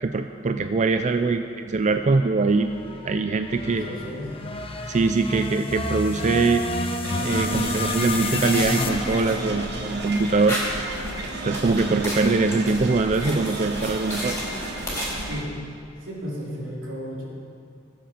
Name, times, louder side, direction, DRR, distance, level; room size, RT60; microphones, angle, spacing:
voice 1, 0.0-2.7 3.0-3.9 4.9-6.6 7.2-10.6 11.4-14.4, right 3 dB, 40° right, 7 dB, 0.4 m, -22 dB
sound 1, 2.6-10.9, left 2 dB, 30° left, 0.9 m, -30 dB
voice 2, 3.6-4.3 5.5-5.6 15.2-15.8 16.0-17.2, equal, 90° right, -4 dB, 3.4 m, -34 dB
sound 2, 7.0-15.4, right 1 dB, 60° right, 1.5 m, -33 dB
sound 3, 8.3-15.2, left 1 dB, 15° left, 3.9 m, -35 dB
19.0 x 7.6 x 5.8 m, 2.4 s
head